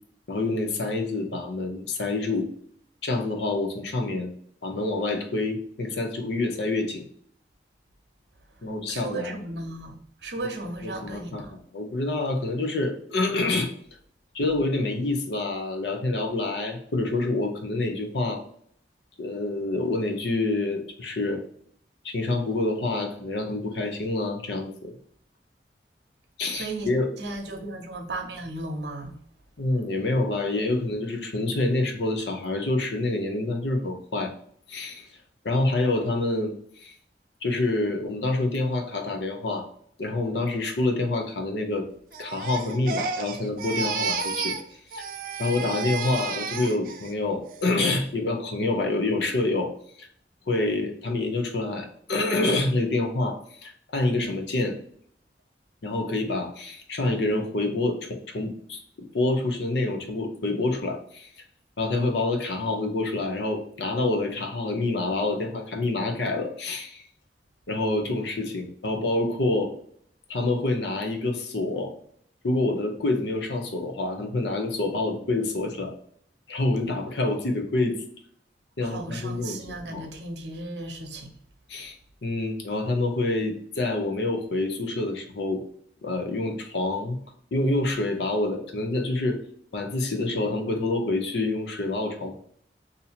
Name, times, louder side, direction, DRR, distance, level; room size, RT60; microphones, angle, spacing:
voice 1, 0.3-2.5 3.0-4.3 4.6-7.0 8.6-9.3 10.8-13.7 14.3-18.4 19.2-21.4 22.0-24.9 26.4-27.1 29.6-34.3 34.7-35.1 35.4-36.9 37.4-39.7 40.0-41.9 42.2-44.5 44.9-45.0 45.4-49.7 50.0-50.1 50.5-54.8 55.8-61.3 61.8-67.0 67.7-69.7 70.3-71.9 72.4-75.9 76.5-78.0 78.8-80.0 81.7-82.0 82.2-85.6 86.0-87.2 87.5-89.4 89.7-92.4, left 2 dB, 80° left, 0.7 m, -27 dB
voice 2, 8.9-11.5 26.5-26.9 27.2-29.2 76.8-76.9 78.8-81.3, right 2 dB, 75° right, 0.8 m, -35 dB
Crying sobbing, 42.1-44.7 44.9-47.1 47.5-47.9, right 4 dB, 50° right, 0.3 m, -31 dB
2.8 x 2.7 x 4.1 m
head